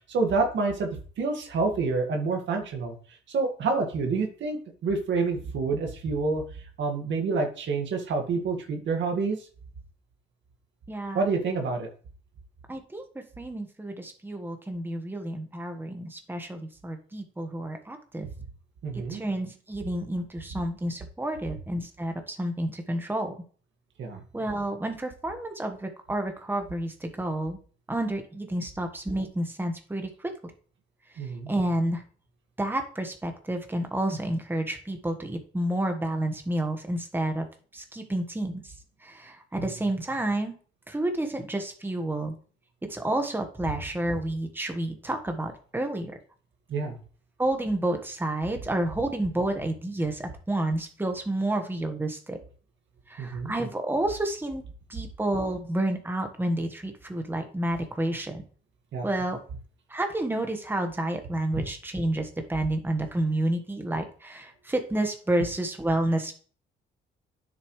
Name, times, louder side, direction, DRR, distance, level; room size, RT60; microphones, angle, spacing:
voice 1, 0.1-0.9 1.2-2.9 3.3-9.4 11.1-11.9 18.8-19.2 24.0-24.2 31.2-31.5 39.6-39.7 46.7-47.0 53.2-53.5 58.9-59.1 61.5-61.6, right 4 dB, 70° right, 2 dB, 2.0 m, -28 dB
voice 2, 10.9-11.3 12.7-13.0 13.4-18.3 19.1-23.3 24.3-27.6 27.9-30.3 31.5-32.0 32.6-37.5 37.7-38.6 39.0-40.6 40.9-42.3 42.9-46.1 47.4-52.4 53.1-54.6 54.9-58.4 59.0-59.4 59.9-66.3, right 1 dB, 10° right, 5 dB, 1.4 m, -30 dB
9.8 x 7.2 x 3.3 m, 0.42 s
cardioid pair, 90°, 20 cm